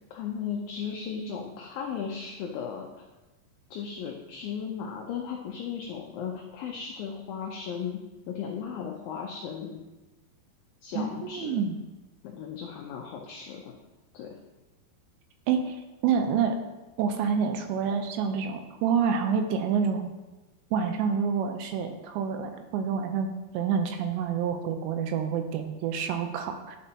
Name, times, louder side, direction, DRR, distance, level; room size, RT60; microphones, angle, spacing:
voice 1, 0.1-3.1 3.7-8.0 8.3-9.8 10.8-11.6 12.2-13.7 14.1-14.4, left 7 dB, 85° left, 0 dB, 2.0 m, -36 dB
voice 2, 11.0-11.8 15.5-15.8 16.0-16.6 17.0-20.1 20.7-26.8, right 6 dB, 90° right, 6 dB, 2.9 m, -28 dB
11.0 x 5.5 x 2.8 m, 1.1 s
omnidirectional pair, 5.0 m